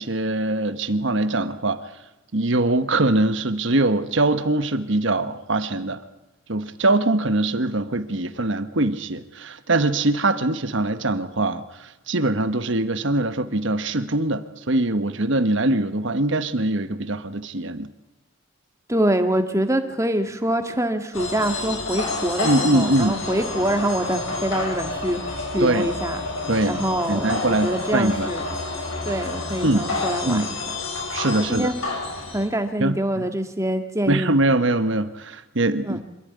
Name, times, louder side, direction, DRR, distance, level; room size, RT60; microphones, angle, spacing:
voice 1, 0.0-1.8 2.3-6.0 6.5-17.9 22.4-23.2 25.6-25.9 26.5-28.3 29.6-29.9 30.3-30.5 31.1-31.7 32.8-33.3 34.1-36.0, right 2 dB, 60° right, 10 dB, 1.2 m, -22 dB
voice 2, 18.9-25.2 25.5-26.2 26.7-28.5 29.1-30.6 31.4-31.8 32.3-34.3 35.8-36.0, right 1 dB, 15° right, 7 dB, 1.8 m, -25 dB
sound 1, 21.1-32.5, left 3 dB, 75° left, 7.1 m, -29 dB
26.0 x 14.0 x 9.6 m, 0.97 s
head